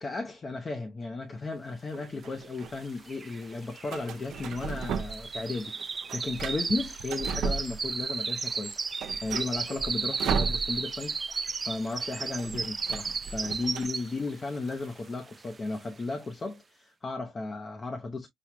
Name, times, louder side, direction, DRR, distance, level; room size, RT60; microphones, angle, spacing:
voice 1, 0.0-18.3, left 3 dB, 35° left, 0.8 m, -35 dB
sound 1, 1.9-2.7 3.9-5.4 5.7-8.2 8.5-8.6 8.9-11.1 11.3-11.5 11.8-13.9, right 5 dB, 75° right, 0.6 m, -35 dB
sound 2, 2.6-2.7 2.9-14.3 14.7-15.0 15.5-15.6, right 4 dB, 35° right, 0.3 m, -34 dB
sound 3, 2.7-15.2, left 5 dB, 70° left, 1.4 m, -58 dB
5.9 x 2.3 x 3.0 m
cardioid pair, 90°, 0 cm